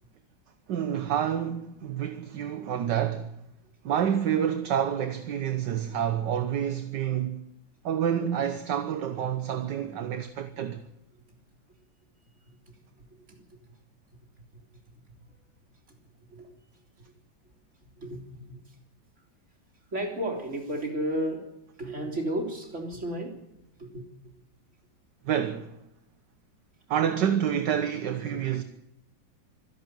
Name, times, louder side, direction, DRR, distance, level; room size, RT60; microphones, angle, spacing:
voice 1, 0.7-3.3 3.8-7.4 7.8-10.8 25.2-25.8 26.9-28.6, right 9 dB, 65° right, 1.7 m, -28 dB
voice 2, 12.5-13.5 16.3-16.5 17.0-17.1 18.0-18.6 19.9-21.5 21.8-23.4 23.8-24.3, right 1 dB, 35° right, 3.8 m, -33 dB
25.5 x 11.0 x 9.1 m
omnidirectional pair, 2.1 m